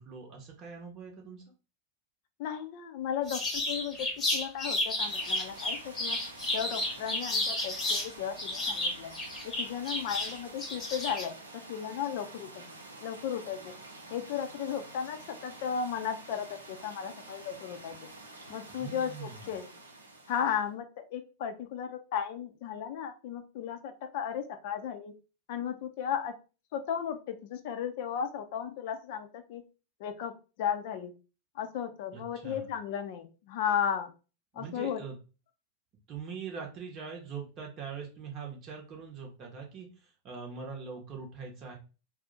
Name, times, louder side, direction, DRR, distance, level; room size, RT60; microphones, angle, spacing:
voice 1, 0.0-1.4 18.8-19.5 32.1-32.7 34.5-35.2 36.1-41.8, right 5 dB, 35° right, 0 dB, 0.8 m, -42 dB
voice 2, 2.4-4.1 4.3-6.2 6.5-9.1 9.4-11.3 11.7-12.7 13.0-13.7 14.1-18.0 18.5-19.6 20.3-25.1 25.5-26.3 26.7-29.6 30.0-30.3 30.6-31.1 31.6-34.1 34.5-35.0, left 8 dB, 50° left, 8 dB, 0.4 m, -35 dB
sound 1, 3.3-8.1 8.4-11.3, left 2 dB, 20° left, 0.9 m, -32 dB
sound 2, 5.0-20.7, right 2 dB, 80° right, 0.5 m, -48 dB
2.5 x 2.0 x 3.8 m, 0.33 s
figure-of-eight pair, 90°, 0 cm